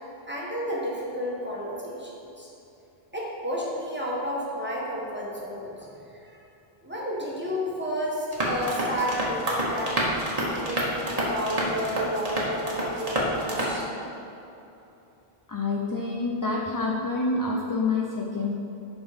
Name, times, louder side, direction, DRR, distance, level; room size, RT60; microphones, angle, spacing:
voice 1, 0.2-2.5 3.1-5.9 6.2-6.4 6.8-10.0 10.4-13.8, equal, 10° right, -5 dB, 1.4 m, -31 dB
sound 1, 8.3-13.8, equal, 35° right, 1.4 m, -28 dB
voice 2, 15.5-18.5, left 3 dB, 25° left, -2 dB, 0.4 m, -27 dB
10.5 x 4.2 x 5.1 m, 2.9 s
omnidirectional pair, 1.1 m